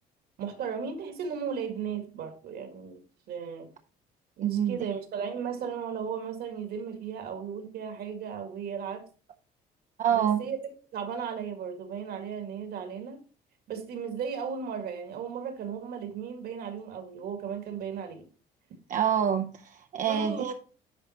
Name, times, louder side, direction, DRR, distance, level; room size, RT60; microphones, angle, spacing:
voice 1, 0.4-3.0 3.3-3.7 4.4-9.1 10.1-13.2 13.7-18.3 20.0-20.5, right 7 dB, 65° right, 2.0 m, -35 dB
voice 2, 4.4-4.9 10.0-10.4 18.9-20.5, right 9 dB, 50° right, 0.7 m, -27 dB
10.5 x 3.9 x 4.3 m
cardioid pair, 110°, 17 cm